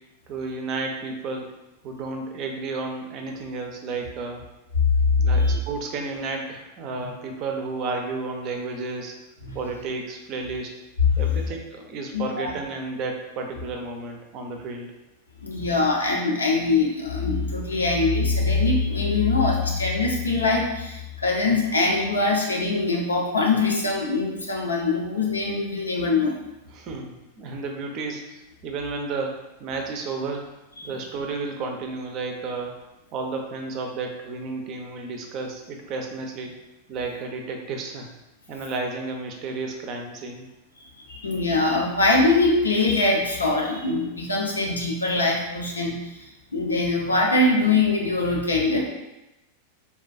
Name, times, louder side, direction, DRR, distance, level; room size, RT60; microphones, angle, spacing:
voice 1, 0.3-1.5 1.8-4.4 5.2-9.1 9.5-10.7 11.2-14.9 26.7-30.5 30.8-32.7 33.1-36.5 36.9-38.1 38.5-40.5, right 3 dB, 40° right, 3 dB, 0.5 m, -32 dB
voice 2, 4.9-5.6 9.4-9.6 11.1-11.2 12.1-12.5 15.4-26.4 30.8-30.9 40.8-48.8, left 3 dB, 75° left, -1 dB, 0.6 m, -23 dB
3.4 x 2.2 x 2.5 m, 0.97 s
figure-of-eight pair, 90°, 0 cm